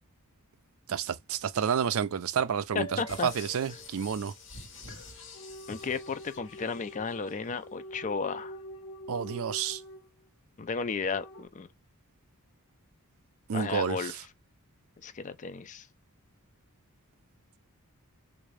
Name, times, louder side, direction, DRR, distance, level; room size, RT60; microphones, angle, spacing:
voice 1, 0.9-4.3 9.1-9.8 13.5-14.2, right 7 dB, 65° right, 0.4 m, -30 dB
sound 1, 2.7-10.3 11.0-11.5, equal, 85° left, 1.1 m, -46 dB
voice 2, 2.7-3.3 5.7-8.6 10.6-11.7 13.5-14.1 15.0-15.9, left 5 dB, 35° left, 0.4 m, -34 dB
sound 2, 3.1-7.5 7.9-8.0, left 4 dB, 60° left, 1.1 m, -49 dB
3.6 x 2.6 x 3.2 m
head